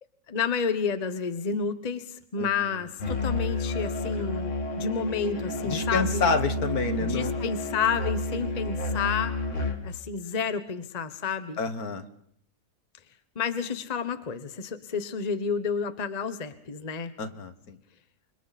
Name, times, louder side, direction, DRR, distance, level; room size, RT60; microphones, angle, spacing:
voice 1, 0.3-6.3 7.0-9.4 9.8-11.6 13.3-17.1, left 6 dB, 30° left, 11 dB, 1.1 m, -30 dB
voice 2, 2.4-2.8 5.6-7.3 11.6-12.1 17.2-17.8, left 4 dB, 65° left, 9 dB, 1.9 m, -29 dB
Musical instrument, 3.0-9.9, left 1 dB, 50° left, 2.2 m, -30 dB
29.0 x 26.0 x 4.2 m, 0.67 s
omnidirectional pair, 1.7 m